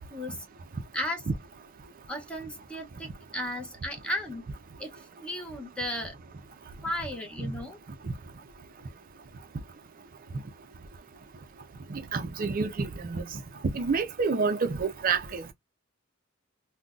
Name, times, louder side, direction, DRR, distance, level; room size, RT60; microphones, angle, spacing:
voice 1, 0.1-0.5 0.9-1.2 2.1-4.5 4.8-4.9 5.2-6.1 6.8-7.8, left 1 dB, 5° left, 0.7 m, -35 dB
voice 2, 12.1-13.2 13.7-15.5, right 4 dB, 40° right, 0.5 m, -28 dB
3.8 x 2.2 x 2.4 m
head